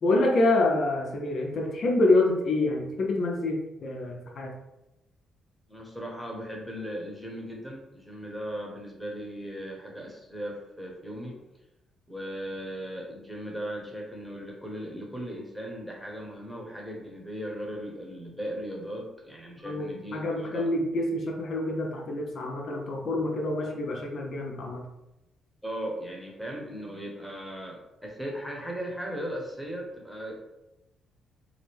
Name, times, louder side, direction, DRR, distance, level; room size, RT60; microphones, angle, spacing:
voice 1, 0.0-4.6 19.6-24.8, left 2 dB, 55° left, 0 dB, 0.6 m, -27 dB
voice 2, 5.7-11.4 12.1-20.7 25.6-30.4, equal, ahead, -1 dB, 1.1 m, -37 dB
4.8 x 2.0 x 3.4 m, 0.94 s
cardioid pair, 90°, 0 cm